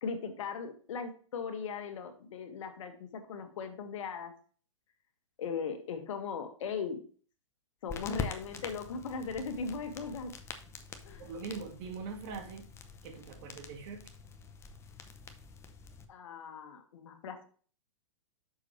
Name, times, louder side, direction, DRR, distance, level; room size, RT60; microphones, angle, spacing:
voice 1, 0.0-4.3 5.4-7.0 7.8-10.3 11.0-11.3 16.1-17.4, left 5 dB, 65° left, 1.8 m, -38 dB
sound 1, 7.9-16.0, left 5 dB, 15° left, 0.8 m, -45 dB
voice 2, 11.2-12.7 13.0-14.0, right 5 dB, 45° right, 1.9 m, -42 dB
7.3 x 6.5 x 3.2 m
hypercardioid pair, 140°, 17 cm